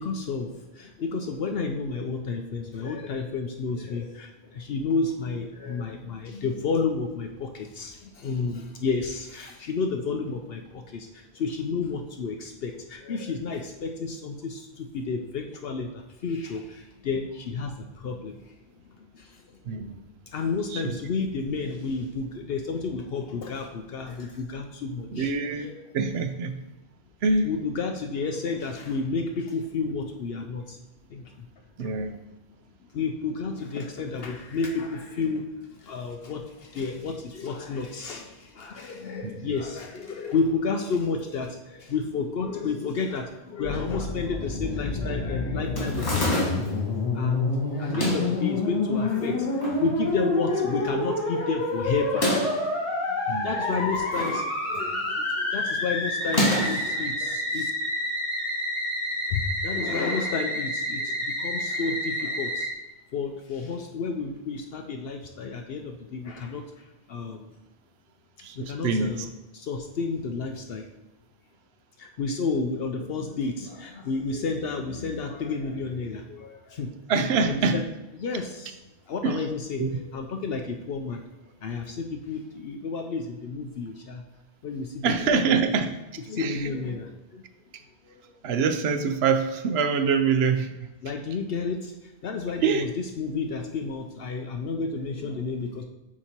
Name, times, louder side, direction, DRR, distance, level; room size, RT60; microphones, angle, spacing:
voice 1, 0.0-18.6 19.0-19.6 20.3-25.7 27.4-30.8 31.1-31.4 31.8-31.9 32.9-46.7 47.1-52.4 53.1-57.7 59.3-62.7 63.1-66.6 67.1-67.5 68.5-69.3 69.5-70.9 72.0-76.9 77.4-77.8 78.2-78.8 79.1-81.2 81.6-84.2 84.6-85.6 86.3-87.5 88.0-88.4 91.0-92.9 93.2-95.8, left 4 dB, 65° left, 4 dB, 0.8 m, -31 dB
voice 2, 19.6-20.0 20.7-21.0 25.1-25.7 25.9-26.6 27.2-27.5 31.8-32.2 39.2-39.3 47.9-48.1 53.3-53.5 68.4-69.3 77.1-77.8 79.2-79.4 79.8-80.0 85.0-85.9 86.4-86.7 88.4-90.9 92.6-92.9, right 5 dB, 75° right, 9 dB, 0.9 m, -25 dB
Musical instrument, 43.6-62.7, left 2 dB, 30° left, 1.2 m, -29 dB
sound 1, 45.8-46.8 47.8-48.4 49.2-49.8 50.2-50.3 50.4-50.5 52.0-52.7 53.7-54.4 54.8-55.1 56.2-56.9, equal, 85° left, 2.3 m, -28 dB
8.6 x 2.9 x 4.4 m, 1.0 s
omnidirectional pair, 1.1 m